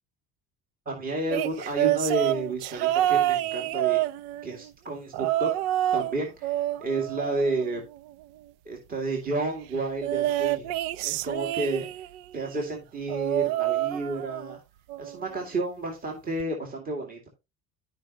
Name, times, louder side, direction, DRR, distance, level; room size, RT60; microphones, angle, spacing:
voice 1, 0.9-4.0 4.4-5.5 5.9-7.8 8.7-10.7 11.0-11.9 12.3-14.6 15.0-17.3, right 2 dB, 20° right, 1 dB, 2.3 m, -31 dB
sound 1, 1.3-4.6 5.1-6.1 6.4-8.0 10.0-12.2 13.1-14.6 14.9-15.3 16.4-16.5, right 14 dB, 75° right, 0.7 m, -27 dB
13.5 x 5.4 x 2.9 m, 0.25 s
cardioid pair, 120°, 39 cm